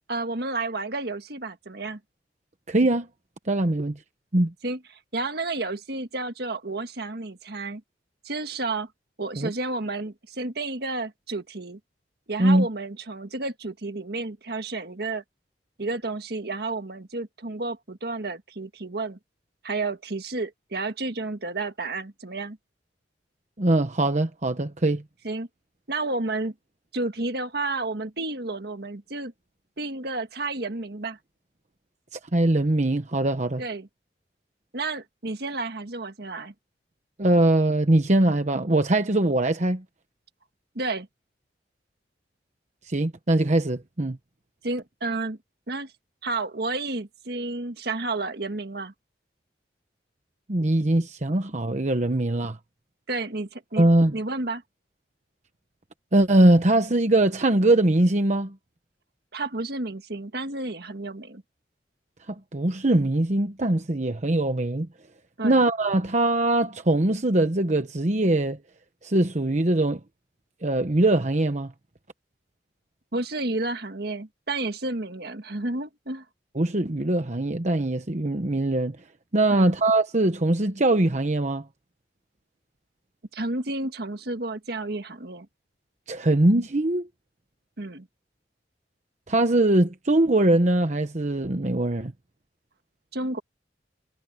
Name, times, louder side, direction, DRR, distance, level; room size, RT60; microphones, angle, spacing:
voice 1, 0.1-2.0 4.6-4.8 5.1-7.8 8.2-8.9 9.2-11.8 12.3-15.2 15.8-19.2 19.6-22.6 25.2-25.5 25.9-26.5 26.9-29.3 29.8-31.2 33.6-33.9 34.7-36.5 40.8-41.1 44.6-45.4 45.7-45.9 46.2-48.9 53.1-53.9 54.1-54.6 59.3-61.4 65.4-65.6 73.1-76.3 79.5-79.8 83.3-85.5 87.8-88.1 93.1-93.4, right 2 dB, 65° right, 1.7 m, -31 dB
voice 2, 2.7-3.1 3.5-4.0 4.3-4.5 9.4-9.5 12.4-12.7 23.6-25.0 32.1-33.6 37.2-39.8 42.9-44.2 50.5-52.6 53.8-54.2 56.1-58.5 62.5-64.9 65.4-68.6 69.0-70.0 70.6-71.7 76.5-79.0 79.3-81.6 86.1-87.1 89.3-92.1, right 1 dB, 40° right, 1.1 m, -22 dB
head